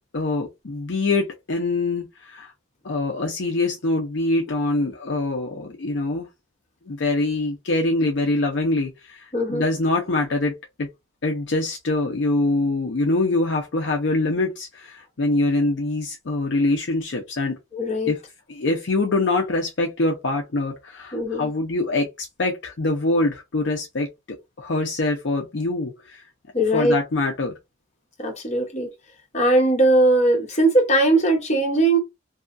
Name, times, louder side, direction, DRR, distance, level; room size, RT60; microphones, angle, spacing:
voice 1, 0.1-2.5 2.8-6.3 6.9-10.9 11.2-17.6 18.1-18.2 18.5-24.1 24.6-26.2 26.7-27.5, left 2 dB, 60° left, 0.6 m, -24 dB
voice 2, 9.3-9.6 17.7-18.1 21.1-21.5 26.5-26.9 28.2-28.9 29.3-32.0, right 1 dB, 35° left, 0.9 m, -19 dB
2.7 x 2.3 x 2.5 m
head